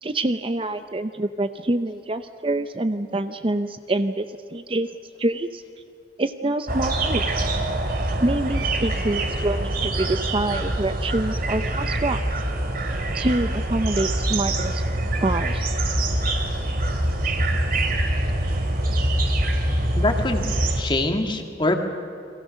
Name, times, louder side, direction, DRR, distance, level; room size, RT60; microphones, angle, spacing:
voice 1, 0.0-4.2 4.5-4.9 5.2-5.6 6.2-7.2 8.2-12.2 13.1-14.8 15.2-15.6, right 2 dB, 30° right, 10 dB, 0.7 m, -26 dB
sound 1, 6.7-20.8, right 1 dB, 55° right, 2.5 m, -24 dB
voice 2, 20.0-20.4 20.8-21.8, left 2 dB, 25° left, 5 dB, 2.0 m, -24 dB
29.5 x 22.5 x 6.4 m, 2.4 s
head